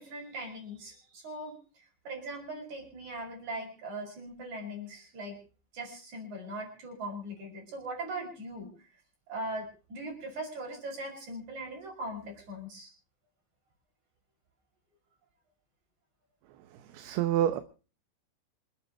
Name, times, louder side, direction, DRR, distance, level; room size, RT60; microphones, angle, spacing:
voice 1, 0.0-1.6 2.1-5.4 5.7-8.7 9.3-12.9, right 1 dB, 45° right, 1 dB, 7.2 m, -40 dB
voice 2, 16.9-17.6, right 11 dB, 75° right, 10 dB, 2.7 m, -27 dB
27.0 x 9.1 x 4.5 m, 0.37 s
omnidirectional pair, 4.9 m